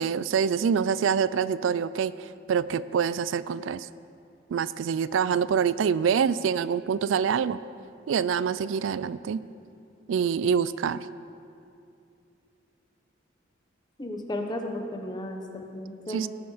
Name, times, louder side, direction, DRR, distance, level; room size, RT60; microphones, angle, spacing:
voice 1, 0.0-2.1 2.5-3.9 4.5-7.6 8.1-9.4 10.1-11.1 16.1-16.3, right 7 dB, 80° right, 17 dB, 0.3 m, -25 dB
voice 2, 14.0-16.3, left 1 dB, 20° left, 3 dB, 1.0 m, -34 dB
18.0 x 6.9 x 5.0 m, 2.5 s
head